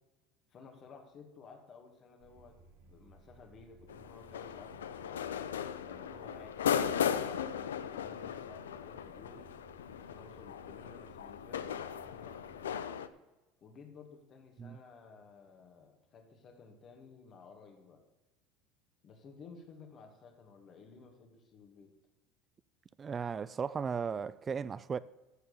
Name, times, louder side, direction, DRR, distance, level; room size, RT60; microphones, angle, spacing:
voice 1, 0.5-5.2 5.8-9.5 10.0-12.9 13.6-18.0 19.0-22.0, left 5 dB, 45° left, 2.1 m, -55 dB
sound 1, 2.2-12.8, right 3 dB, 70° right, 3.4 m, -60 dB
sound 2, 3.9-13.1, left 8 dB, 90° left, 0.5 m, -37 dB
voice 2, 23.0-25.0, right 6 dB, 30° right, 0.3 m, -36 dB
13.5 x 4.6 x 6.9 m
hypercardioid pair, 80°, 0 cm